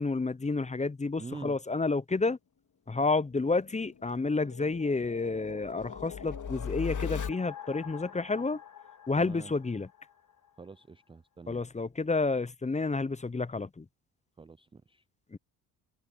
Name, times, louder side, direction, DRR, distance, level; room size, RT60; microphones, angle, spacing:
voice 1, 0.0-2.4 2.9-8.6 9.1-9.9 11.5-13.8 15.3-15.4, left 3 dB, 15° left, 0.8 m, -30 dB
voice 2, 1.2-1.6 9.1-9.5 10.6-11.6 14.4-15.0, right 4 dB, 15° right, 0.4 m, -45 dB
sound 1, 3.3-10.1, left 7 dB, 45° left, 2.5 m, -40 dB
supercardioid pair, 60°, 43 cm